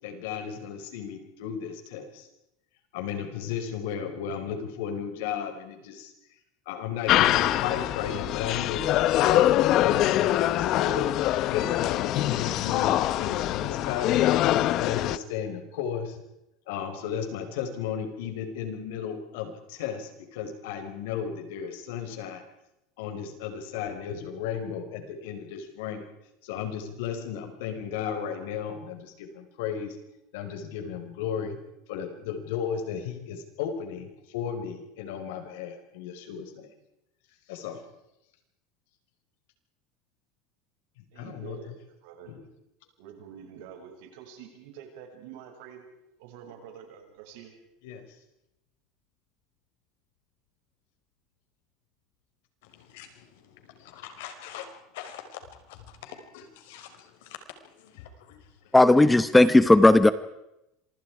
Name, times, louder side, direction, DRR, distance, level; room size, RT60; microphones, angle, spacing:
voice 1, 0.0-2.3 2.9-6.1 6.6-11.1 11.5-14.3 14.7-16.2 16.7-22.4 23.0-26.1 26.4-30.0 30.3-31.5 31.9-36.7 37.5-37.8 41.0-41.6 42.3-42.4 47.8-48.0 52.6-54.7 54.9-55.4 55.7-57.4 57.6-58.7, left 8 dB, 85° left, 6 dB, 5.1 m, -35 dB
sound 1, 7.1-15.2, left 13 dB, 50° left, 1.0 m, -24 dB
voice 2, 41.1-42.4 43.0-45.9 46.2-47.6, right 8 dB, 75° right, 3 dB, 6.6 m, -46 dB
voice 3, 58.7-60.1, left 2 dB, 5° left, 14 dB, 0.9 m, -16 dB
26.5 x 25.5 x 4.9 m, 0.86 s
supercardioid pair, 145°, 0 cm